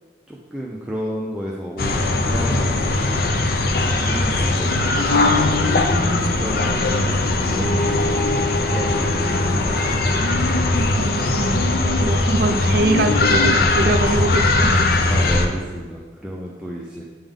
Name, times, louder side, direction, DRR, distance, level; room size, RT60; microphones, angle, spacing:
voice 1, 0.3-2.8 3.8-8.1 8.7-10.2 15.1-17.0, equal, 5° right, -4 dB, 0.5 m, -32 dB
sound 1, 1.8-15.5, left 2 dB, 55° left, 0.5 m, -19 dB
sound 2, 7.4-12.2, left 1 dB, 30° left, 1.5 m, -31 dB
voice 2, 11.0-15.0, right 2 dB, 60° right, 7 dB, 0.4 m, -23 dB
7.9 x 3.6 x 3.6 m, 1.4 s
head